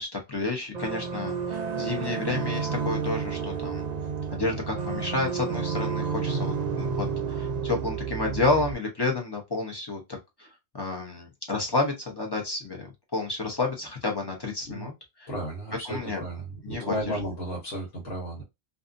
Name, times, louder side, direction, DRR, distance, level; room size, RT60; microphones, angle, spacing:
voice 1, 0.0-3.8 4.3-10.0 10.4-10.5 10.7-14.9 15.2-15.3 15.8-16.2 16.6-17.2, left 3 dB, 25° left, 0.7 m, -30 dB
sound 1, 0.7-8.7, right 6 dB, 55° right, 0.5 m, -30 dB
voice 2, 15.3-18.4, right 1 dB, 80° left, 1.4 m, -33 dB
2.6 x 2.5 x 2.5 m
omnidirectional pair, 1.1 m